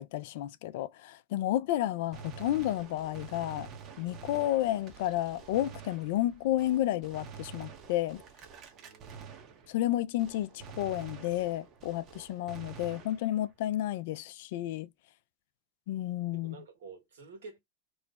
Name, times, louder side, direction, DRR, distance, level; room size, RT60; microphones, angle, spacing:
voice 1, 0.0-3.7 4.0-8.2 9.7-14.9 15.9-16.6, left 14 dB, 70° left, 0.4 m, -31 dB
Gunshot gunfire, 2.1-9.9 10.2-13.5, right 6 dB, 40° right, 1.0 m, -48 dB
voice 2, 8.7-9.5 16.3-17.6, right 4 dB, 80° right, 1.7 m, -50 dB
3.1 x 2.1 x 4.0 m
hypercardioid pair, 105°, 0 cm